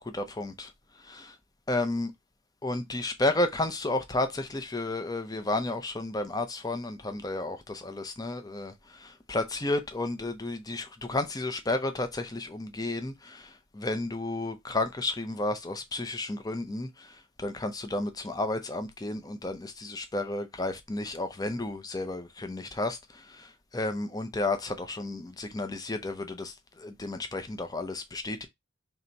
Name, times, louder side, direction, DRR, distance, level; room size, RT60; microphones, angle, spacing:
voice 1, 0.0-0.5 1.0-1.3 1.7-2.1 2.6-28.5, left 2 dB, 15° left, 0.5 m, -32 dB
3.3 x 2.9 x 3.9 m
head